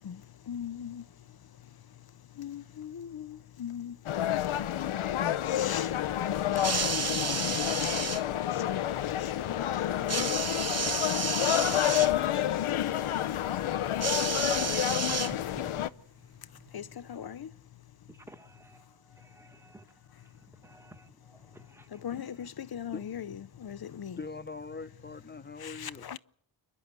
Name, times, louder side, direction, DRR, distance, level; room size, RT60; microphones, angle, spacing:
voice 1, 0.0-15.4 15.7-15.8 16.2-18.1 20.3-20.4 21.9-24.2 25.6-26.2, left 9 dB, 50° left, 0.8 m, -43 dB
sound 1, 4.1-15.9, left 11 dB, 90° left, 0.8 m, -29 dB
sound 2, 6.5-8.2 10.1-12.1 14.0-15.7 16.7-16.8, right 5 dB, 30° right, 1.1 m, -32 dB
voice 2, 18.1-22.5, right 1 dB, 5° right, 1.6 m, -56 dB
voice 3, 24.2-26.1, left 4 dB, 20° left, 1.1 m, -41 dB
29.0 x 11.0 x 8.2 m
cardioid pair, 75°, 48 cm